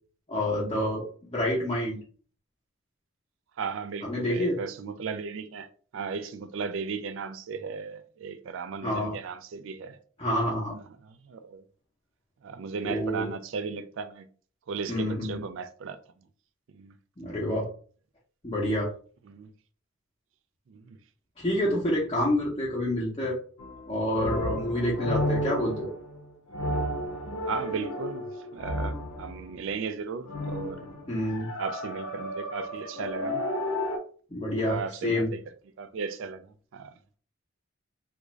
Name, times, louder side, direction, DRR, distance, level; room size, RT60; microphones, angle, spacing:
voice 1, 0.3-1.1 1.3-2.0 4.0-4.6 8.8-9.2 10.2-10.8 12.8-13.3 14.9-15.4 17.2-17.7 18.4-18.9 21.4-23.4 23.9-25.9 31.1-31.5 34.3-35.3, left 1 dB, 25° left, 0.7 m, -28 dB
voice 2, 3.6-10.0 11.0-11.6 12.4-14.3 14.7-16.0 16.7-16.9 19.3-19.5 20.7-21.0 27.5-28.2 28.5-30.8 31.6-33.4 34.5-35.4 35.8-36.9, right 5 dB, 60° right, 0.3 m, -36 dB
sound 1, 23.6-29.5 30.2-34.0, left 1 dB, 85° left, 0.8 m, -32 dB
3.5 x 2.5 x 3.1 m
head